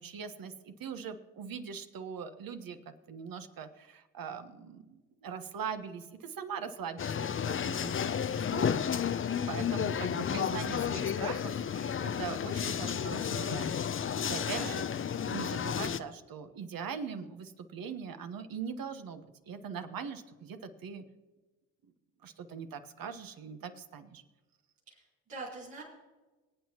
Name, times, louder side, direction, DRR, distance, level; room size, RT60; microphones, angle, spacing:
voice 1, 0.0-2.8 3.1-9.2 9.5-14.8 15.3-21.0 22.2-24.2, right 6 dB, 55° right, 8 dB, 1.3 m, -41 dB
sound 1, 7.0-16.0, left 8 dB, 30° left, 0.6 m, -32 dB
voice 2, 24.9-25.8, right 3 dB, 80° right, -7 dB, 4.7 m, -43 dB
25.0 x 8.7 x 3.0 m, 1.2 s
hypercardioid pair, 50°, 41 cm